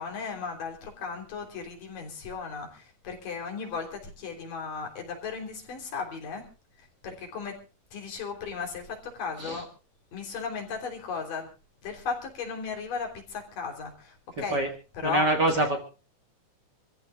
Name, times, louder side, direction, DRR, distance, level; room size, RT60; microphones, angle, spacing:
voice 1, 0.0-6.4 7.0-7.6 7.9-9.7 10.1-11.5 11.8-14.6 15.0-15.7, left 5 dB, 85° left, 2 dB, 5.2 m, -36 dB
voice 2, 15.0-15.8, right 2 dB, 40° right, 4 dB, 1.9 m, -25 dB
27.0 x 15.0 x 2.4 m, 0.34 s
omnidirectional pair, 3.8 m